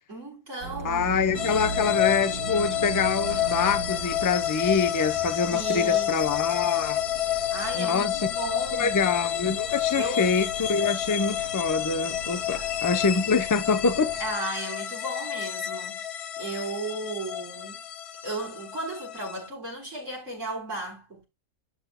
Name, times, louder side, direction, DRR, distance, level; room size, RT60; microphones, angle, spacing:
voice 1, 0.1-1.8 5.5-6.2 7.3-8.9 10.0-10.3 12.5-12.7 14.2-17.8 18.2-21.2, right 2 dB, 55° right, 4.3 m, -35 dB
sound 1, 0.6-14.3, right 4 dB, 75° right, 1.7 m, -39 dB
voice 2, 0.8-7.0 7.7-8.1 8.8-14.1, left 5 dB, 25° left, 0.4 m, -25 dB
sound 2, 1.3-19.5, left 11 dB, 55° left, 0.8 m, -29 dB
11.5 x 6.3 x 2.2 m
omnidirectional pair, 1.6 m